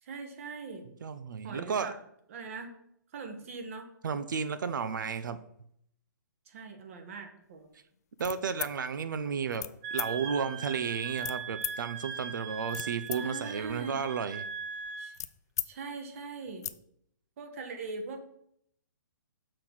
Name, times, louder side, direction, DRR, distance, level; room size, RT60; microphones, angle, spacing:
voice 1, 0.0-0.9 1.4-2.0 2.3-2.7 3.1-3.9 6.5-7.7 13.1-14.0 15.0-15.1 15.6-16.7 17.4-18.3, right 4 dB, 40° right, 4 dB, 1.4 m, -41 dB
voice 2, 1.0-1.9 4.0-5.4 8.2-9.7 9.9-14.5, right 6 dB, 70° right, 12 dB, 0.5 m, -33 dB
sound 1, 8.2-8.8 9.5-9.7 10.0-10.1 11.2-11.8 12.4-13.2 13.5-15.7 16.1-16.2 16.4-16.8, left 9 dB, 50° left, 0.4 m, -38 dB
Wind instrument woodwind instrument, 9.8-15.1, right 6 dB, 25° right, 0.8 m, -39 dB
6.6 x 4.0 x 5.9 m, 0.71 s
hypercardioid pair, 160°, 11 cm